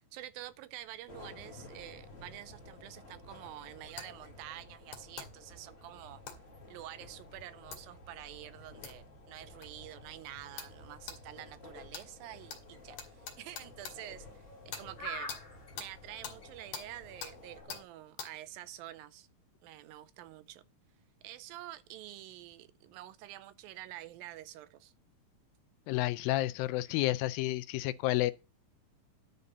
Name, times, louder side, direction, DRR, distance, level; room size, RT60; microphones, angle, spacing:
voice 1, 0.1-6.2 6.7-14.3 14.7-15.4 15.7-19.3 19.6-20.6 21.2-24.9, right 14 dB, 85° right, 2.4 m, -48 dB
sound 1, 1.1-17.8, left 2 dB, 40° left, 0.8 m, -53 dB
sound 2, 4.0-4.1 4.9-5.3 6.3-6.4 7.7-7.8 8.8-9.0 9.6-9.7 10.6-10.7 11.1-11.2 11.9-12.1 12.5-12.6 13.0-14.0 14.7-14.9 15.3-15.4 15.8-15.9 16.2-16.4 16.7-16.9 17.2-17.3 17.7-17.8 18.2-18.3, left 6 dB, 65° left, 3.0 m, -43 dB
sound 3, 12.3-17.6, right 1 dB, 25° left, 2.1 m, -47 dB
voice 2, 25.9-28.3, left 16 dB, 85° left, 2.4 m, -30 dB
11.0 x 4.0 x 6.7 m
omnidirectional pair, 4.1 m